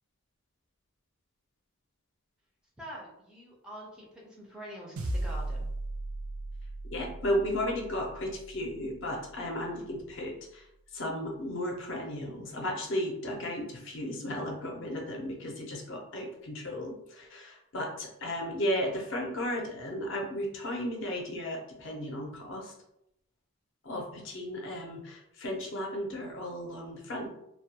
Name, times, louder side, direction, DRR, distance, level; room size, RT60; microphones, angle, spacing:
voice 1, 2.8-5.7, equal, 5° right, -4 dB, 0.4 m, -45 dB
sound 1, 5.0-9.5, right 1 dB, 85° right, 0.4 m, -37 dB
voice 2, 6.9-22.7 23.8-27.4, left 1 dB, 55° left, 0 dB, 0.5 m, -34 dB
2.2 x 2.2 x 2.7 m, 0.80 s
head